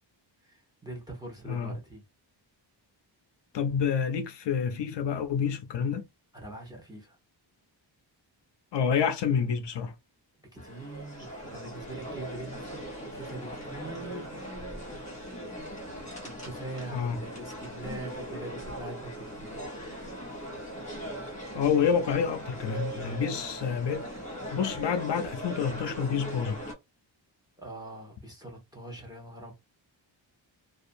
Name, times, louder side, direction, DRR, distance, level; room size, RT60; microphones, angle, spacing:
voice 1, 0.4-2.0 6.3-7.2 10.5-12.8 13.1-14.6 16.2-19.8 27.6-29.5, right 2 dB, 10° right, 0.8 m, -43 dB
voice 2, 3.5-6.1 8.7-9.9 16.9-17.2 21.5-24.1 24.5-26.6, left 7 dB, 65° left, 0.5 m, -28 dB
sound 1, 10.6-26.7, right 1 dB, 15° left, 1.0 m, -40 dB
2.5 x 2.4 x 2.5 m
wide cardioid pair, 175°, 47 cm